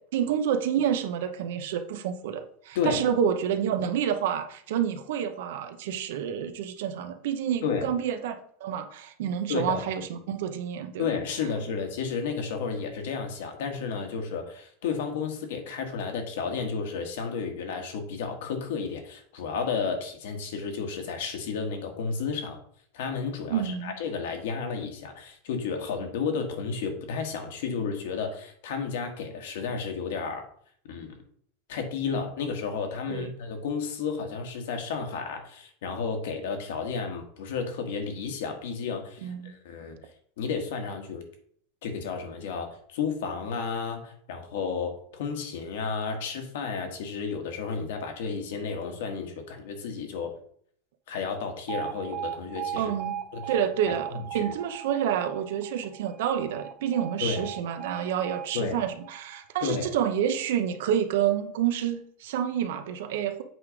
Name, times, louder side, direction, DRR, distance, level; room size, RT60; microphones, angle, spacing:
voice 1, 0.1-8.3 8.6-11.1 23.5-23.9 33.1-33.3 39.2-39.5 52.8-53.2 53.5-63.4, right 9 dB, 75° right, 7 dB, 0.8 m, -28 dB
voice 2, 9.5-9.8 11.0-22.6 22.9-30.5 30.9-31.2 31.7-40.0 40.4-41.2 41.8-50.4 51.1-52.9 53.3-53.4 53.9-54.4 57.2-57.5 58.5-58.8 59.6-59.9, left 5 dB, 75° left, 5 dB, 1.5 m, -32 dB
Alarm, 51.7-59.7, right 10 dB, 30° right, 0.8 m, -38 dB
7.9 x 3.2 x 5.0 m, 0.62 s
supercardioid pair, 170°, 0 cm